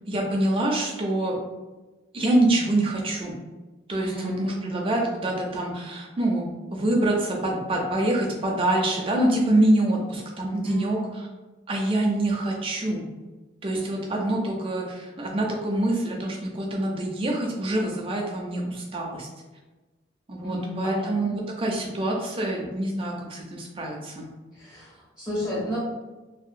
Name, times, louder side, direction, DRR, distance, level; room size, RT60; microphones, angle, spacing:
voice 1, 0.1-1.4 2.1-3.4 3.9-11.0 11.7-13.1 13.6-19.3 20.3-24.3, right 1 dB, 25° right, -1 dB, 0.4 m, -25 dB
voice 2, 4.0-4.8 10.6-11.1 13.7-14.1 20.4-21.3 24.5-25.8, equal, 20° left, -9 dB, 0.6 m, -32 dB
2.8 x 2.1 x 2.5 m, 1.2 s
head